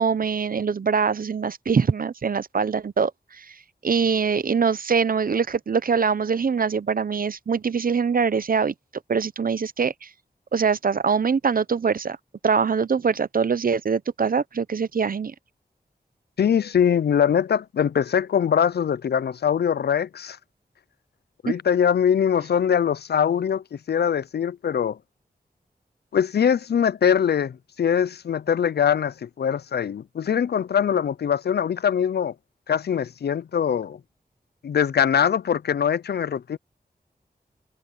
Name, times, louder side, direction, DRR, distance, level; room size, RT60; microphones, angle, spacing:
voice 1, 0.0-3.5 3.8-8.7 9.1-10.1 10.5-12.2 12.4-15.3 21.5-21.6, right 6 dB, 60° right, 0.7 m, -23 dB
voice 2, 16.4-20.4 21.4-25.0 26.1-32.3 32.7-34.0 34.6-36.6, left 8 dB, 85° left, 0.4 m, -22 dB
wide cardioid pair, 90°, 17 cm